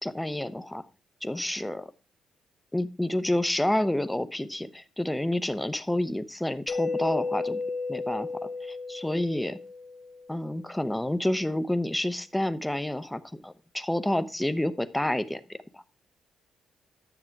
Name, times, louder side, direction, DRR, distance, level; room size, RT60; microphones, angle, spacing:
voice 1, 0.0-0.8 1.2-1.9 2.7-7.6 7.9-9.6 10.3-15.8, left 1 dB, 5° left, 12 dB, 0.7 m, -29 dB
Mallet percussion, 6.7-10.4, left 3 dB, 50° left, 1.3 m, -33 dB
10.0 x 6.9 x 4.5 m, 0.33 s
cardioid pair, 90°, 0 cm